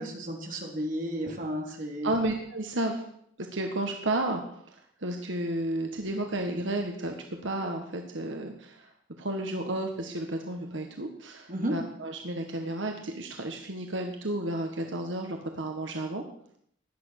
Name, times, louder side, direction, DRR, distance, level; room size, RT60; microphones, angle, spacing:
voice 1, 0.0-2.1 11.5-11.8, equal, 45° right, 0 dB, 3.8 m, -33 dB
voice 2, 2.0-3.0 3.4-4.4 4.7-7.1 7.4-8.9 9.2-16.2, right 1 dB, 75° right, 3 dB, 1.7 m, -32 dB
17.0 x 11.5 x 6.6 m, 0.69 s
head